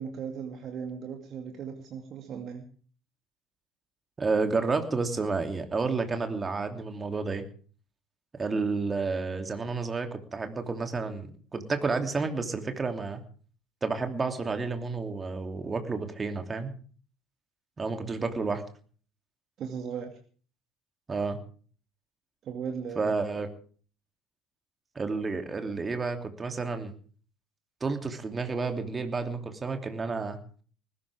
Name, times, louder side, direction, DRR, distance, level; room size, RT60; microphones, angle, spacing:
voice 1, 0.0-2.6 19.6-20.2 22.4-23.1, right 6 dB, 45° right, 4 dB, 2.4 m, -37 dB
voice 2, 4.2-7.4 8.4-13.2 13.8-16.7 17.8-18.6 21.1-21.4 23.0-23.5 24.9-26.9 27.8-30.4, right 4 dB, 25° right, 6 dB, 2.9 m, -30 dB
20.0 x 16.5 x 3.5 m, 0.42 s
figure-of-eight pair, 65°, 0 cm